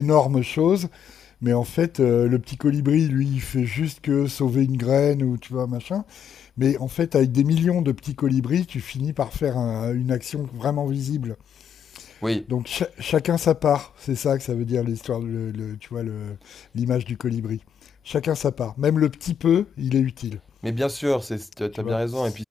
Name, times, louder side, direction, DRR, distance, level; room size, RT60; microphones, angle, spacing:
voice 1, 0.0-11.4 11.9-12.2 12.5-17.6 18.0-20.4 21.8-22.4, left 9 dB, 85° left, 1.3 m, -24 dB
voice 2, 20.6-22.4, left 1 dB, 5° left, 7.1 m, -26 dB
cardioid pair, 85°, 0 cm